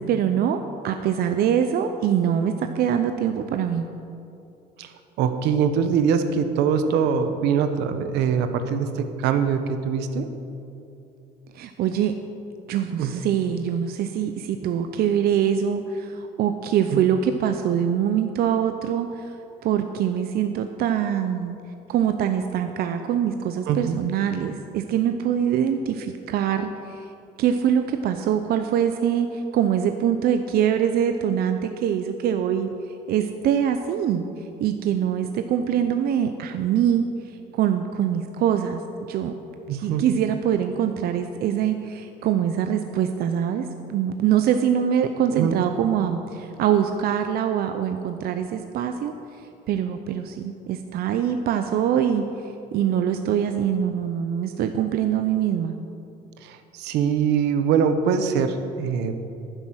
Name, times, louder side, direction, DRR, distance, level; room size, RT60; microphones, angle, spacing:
voice 1, 0.0-3.9 11.5-12.1 12.7-19.3 19.6-21.6 21.9-27.1 27.4-32.7 33.1-34.2 34.6-37.1 37.5-38.8 39.1-39.3 39.7-49.1 49.7-55.7, right 9 dB, 65° right, 7 dB, 0.7 m, -24 dB
voice 2, 4.8-10.3 13.0-13.2 16.9-17.1 23.7-24.0 39.7-40.0 45.3-45.5 56.4-59.2, right 7 dB, 90° right, 9 dB, 1.0 m, -23 dB
11.5 x 9.8 x 6.3 m, 2.7 s
cardioid pair, 110°, 17 cm